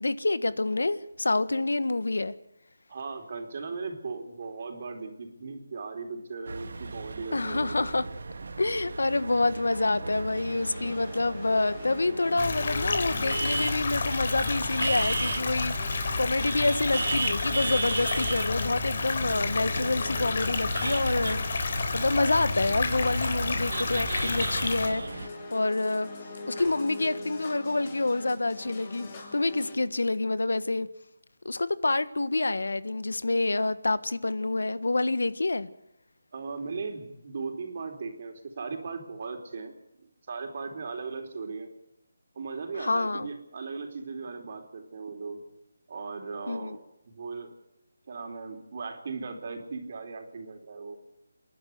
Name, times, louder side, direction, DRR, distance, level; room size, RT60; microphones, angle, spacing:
voice 1, 0.0-2.3 7.3-8.1 8.6-26.1 26.5-30.9 31.4-35.7 42.8-43.3 46.5-46.8, left 2 dB, 85° left, 15 dB, 1.4 m, -27 dB
voice 2, 2.9-7.9 36.3-39.7 40.3-41.7 42.4-45.4 45.9-47.5 48.1-51.0, right 4 dB, 45° right, 4 dB, 4.0 m, -37 dB
sound 1, 6.5-25.3, right 3 dB, 65° right, 1.9 m, -36 dB
sound 2, 10.3-29.8, left 2 dB, 30° left, 7.6 m, -43 dB
sound 3, 12.4-24.9, left 4 dB, 50° left, 3.6 m, -30 dB
29.5 x 11.5 x 8.3 m, 0.84 s
figure-of-eight pair, 165°, 0 cm